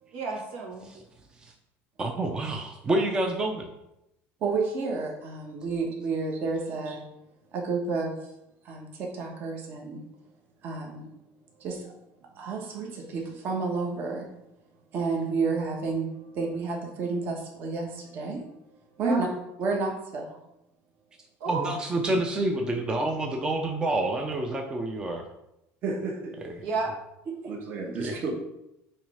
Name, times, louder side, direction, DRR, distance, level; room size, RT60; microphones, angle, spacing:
voice 1, 0.1-0.9 19.0-19.2 21.4-21.7 26.6-26.9, right 4 dB, 75° right, 0 dB, 1.8 m, -31 dB
voice 2, 2.0-3.7 21.5-25.2 26.6-26.7 28.0-28.1, right 2 dB, 15° right, 3 dB, 0.6 m, -28 dB
voice 3, 4.4-7.0 7.5-8.2 8.6-10.0 10.6-11.1 11.6-11.9 12.4-14.3 14.9-18.4 19.0-19.3 19.6-20.4 25.8-26.4 27.3-28.3, right 4 dB, 40° right, 1 dB, 1.2 m, -30 dB
7.2 x 3.1 x 4.9 m, 0.86 s
cardioid pair, 165°, 5 cm